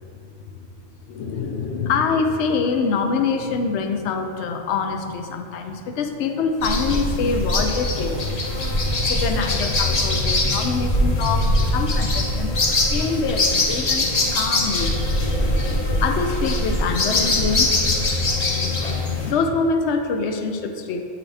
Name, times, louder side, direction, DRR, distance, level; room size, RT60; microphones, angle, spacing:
voice 1, 1.1-12.5 12.9-15.0 16.0-17.7 18.7-18.8 19.2-21.1, left 4 dB, 80° left, 6 dB, 0.9 m, -25 dB
sound 1, 6.6-19.3, left 2 dB, 40° left, 0.7 m, -22 dB
8.2 x 3.9 x 3.3 m, 2.4 s
omnidirectional pair, 1.1 m